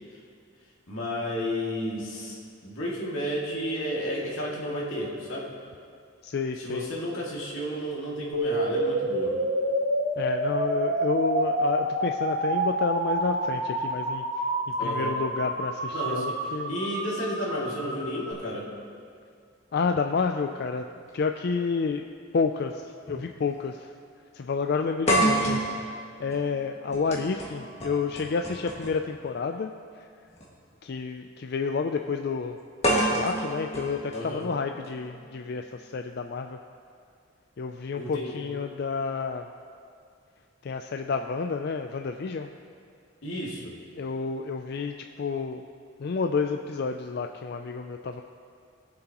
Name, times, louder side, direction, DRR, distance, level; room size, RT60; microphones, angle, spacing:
voice 1, 0.9-5.5 6.6-9.4 14.8-15.2 15.9-18.7 34.1-34.5 38.0-38.4 43.2-43.7, equal, 85° left, -5 dB, 2.3 m, -32 dB
voice 2, 6.2-6.9 10.2-14.2 14.8-16.7 19.7-20.9 21.1-22.1 22.3-23.9 24.3-25.6 26.2-29.7 30.8-32.6 32.9-36.6 37.6-39.5 40.6-42.5 44.0-45.6 46.0-48.2, left 5 dB, 50° left, 5 dB, 0.4 m, -30 dB
sound 1, 8.3-18.3, right 1 dB, 85° right, 2.4 m, -28 dB
sound 2, 23.1-23.3 23.6-23.7 25.1-29.1 30.3-30.4 32.8-34.9, right 1 dB, 30° left, 1.9 m, -28 dB
20.5 x 7.6 x 3.0 m, 2.3 s
head